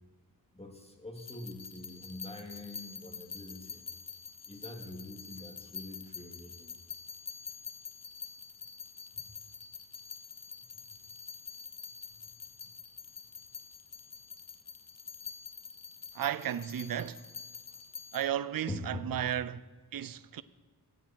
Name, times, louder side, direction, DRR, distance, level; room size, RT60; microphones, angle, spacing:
voice 1, 0.5-3.8 4.5-6.8 9.1-9.4 12.6-12.7 18.7-19.1, left 2 dB, 15° left, 2.9 m, -44 dB
sound 1, 1.2-18.3, left 6 dB, 40° left, 1.1 m, -47 dB
voice 2, 16.1-17.2 18.1-19.6 19.9-20.4, right 10 dB, 60° right, 0.6 m, -34 dB
22.0 x 9.0 x 4.7 m
cardioid pair, 65°, 39 cm